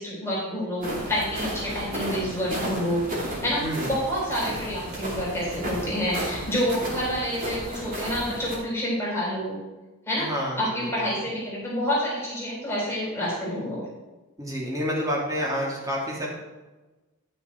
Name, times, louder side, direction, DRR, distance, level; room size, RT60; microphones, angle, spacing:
voice 1, 0.0-9.6 10.1-10.3 10.6-13.8, equal, 10° left, -6 dB, 3.8 m, -28 dB
sound 1, 0.8-8.6, equal, 40° right, 2.8 m, -33 dB
voice 2, 3.5-3.9 10.2-11.0 14.4-16.3, equal, 15° right, -4 dB, 2.3 m, -29 dB
11.5 x 6.3 x 4.4 m, 1.1 s
head